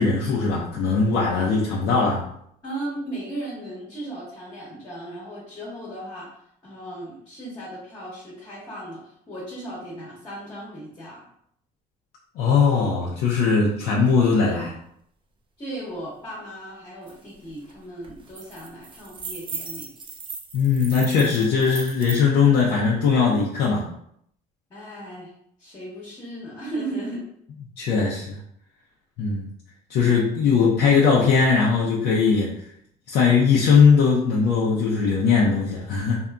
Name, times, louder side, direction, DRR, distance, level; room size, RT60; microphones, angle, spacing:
voice 1, 0.0-2.2 12.4-14.7 20.5-23.9 27.8-28.4 29.2-29.5 29.9-32.5 33.1-36.2, left 5 dB, 80° left, -4 dB, 0.5 m, -20 dB
voice 2, 2.6-6.3 6.6-9.0 9.3-11.2 15.6-19.9 24.7-25.3 25.6-27.2, right 1 dB, 25° left, -5 dB, 0.9 m, -36 dB
sound 1, 17.1-17.2 17.5-17.7 18.0-22.2, right 5 dB, 30° right, 0.4 m, -37 dB
2.7 x 2.4 x 2.2 m, 0.70 s
cardioid pair, 110°, 17 cm